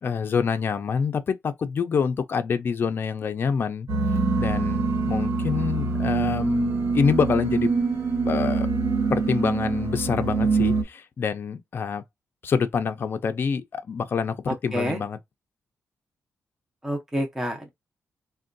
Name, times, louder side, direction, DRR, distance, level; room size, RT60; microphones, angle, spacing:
voice 1, 0.0-3.9 4.4-7.7 8.3-8.7 9.1-12.0 12.4-15.2, left 6 dB, 45° left, 0.4 m, -26 dB
sound 1, 3.9-10.8, right 4 dB, 55° right, 0.7 m, -24 dB
voice 2, 14.5-15.0 16.8-17.7, equal, 10° right, 0.6 m, -28 dB
3.6 x 2.2 x 2.5 m
wide cardioid pair, 150°, 5 cm